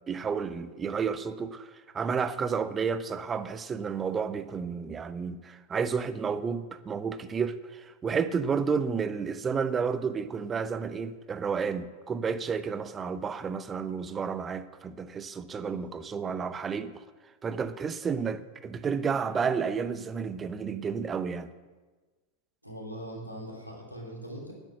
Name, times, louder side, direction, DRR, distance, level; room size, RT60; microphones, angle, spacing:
voice 1, 0.1-17.0 17.4-21.5, right 6 dB, 20° right, 0.7 m, -31 dB
voice 2, 15.6-16.1 22.6-24.5, equal, 90° right, 3.3 m, -41 dB
10.5 x 8.2 x 8.8 m
figure-of-eight pair, 90°, 0 cm